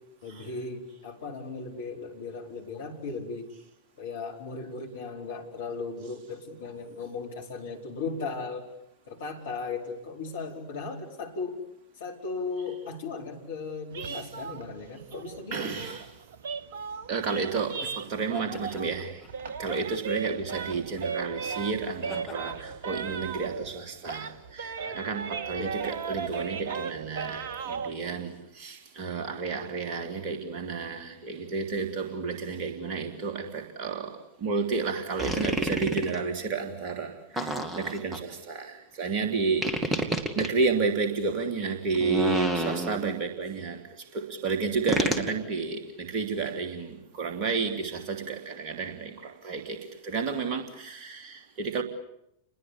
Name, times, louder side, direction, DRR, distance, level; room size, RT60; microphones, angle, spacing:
voice 1, 0.2-3.5 4.0-8.7 9.1-11.6 12.0-16.0 18.1-18.2 25.6-25.8, left 4 dB, 60° left, 2 dB, 4.5 m, -37 dB
sound 1, 13.9-19.0 19.3-23.8 24.0-27.9, right 5 dB, 60° right, 1.1 m, -36 dB
voice 2, 15.5-16.1 17.1-19.2 19.6-39.9 40.3-51.8, right 4 dB, 40° right, 4 dB, 3.3 m, -31 dB
sound 2, 16.8-25.9, left 4 dB, 25° left, 6.5 m, -50 dB
sound 3, 35.2-36.2 37.4-38.2 39.6-40.5 42.0-43.2 44.9-45.3, right 1 dB, 10° right, 2.6 m, -29 dB
29.5 x 21.0 x 8.4 m, 0.79 s
figure-of-eight pair, 90°, 0 cm